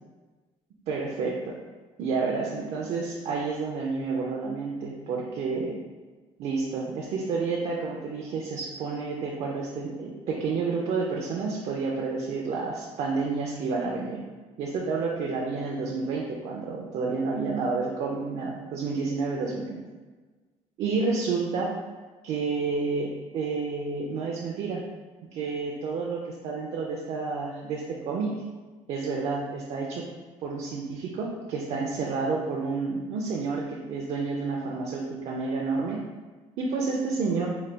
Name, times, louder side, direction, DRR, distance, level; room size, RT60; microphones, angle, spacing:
voice 1, 0.9-1.5 2.0-5.7 6.4-14.2 14.6-19.8 20.8-21.7 22.2-24.8 25.3-28.3 28.9-30.0 30.4-36.0 36.6-37.5, right 4 dB, 60° right, -2 dB, 0.5 m, -30 dB
4.0 x 2.2 x 3.3 m, 1.3 s
cardioid pair, 155°, 12 cm